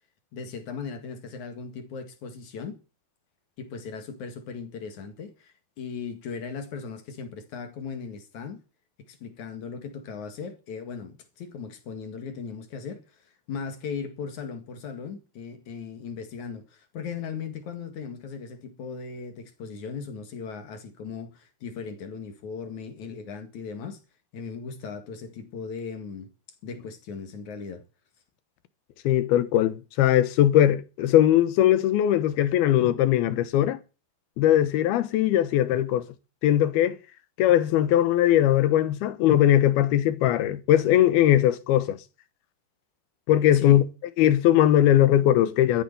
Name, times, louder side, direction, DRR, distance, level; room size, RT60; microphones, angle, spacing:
voice 1, 0.3-2.8 3.6-8.6 9.0-24.0 24.3-26.3 26.6-27.8 43.5-43.8, left 5 dB, 55° left, 2.9 m, -38 dB
voice 2, 29.0-33.8 34.4-36.0 36.4-37.0 37.4-42.0 43.3-43.8 44.2-45.8, left 12 dB, 75° left, 2.9 m, -20 dB
13.0 x 10.0 x 6.9 m
omnidirectional pair, 4.7 m